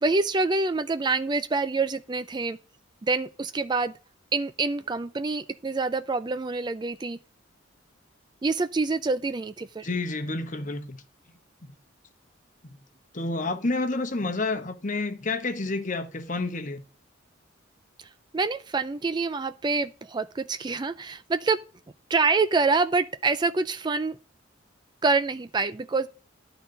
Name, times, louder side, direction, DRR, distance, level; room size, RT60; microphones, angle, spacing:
voice 1, 0.0-2.6 3.0-3.9 4.3-7.2 8.4-9.9 18.0-21.6 22.1-24.2 25.0-26.1, right 3 dB, 20° right, 0.3 m, -26 dB
voice 2, 9.8-11.0 11.6-11.7 12.6-12.8 13.1-16.8, left 2 dB, 40° left, 1.1 m, -29 dB
11.5 x 4.0 x 6.5 m
head